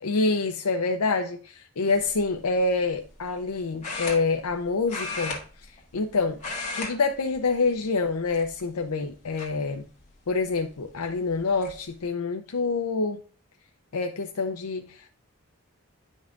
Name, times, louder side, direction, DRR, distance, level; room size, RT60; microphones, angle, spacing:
voice 1, 0.0-5.4 5.6-6.4 6.7-9.8 10.3-13.2 13.9-15.1, left 3 dB, 85° left, 5 dB, 0.6 m, -27 dB
sound 1, 1.9-2.2 3.8-4.6 4.9-6.1 6.3-6.9 7.2-7.5 8.3-8.8 9.4-9.5 10.9-11.0 11.3-11.7, left 3 dB, 30° left, 1.8 m, -34 dB
10.5 x 5.4 x 2.5 m, 0.39 s
head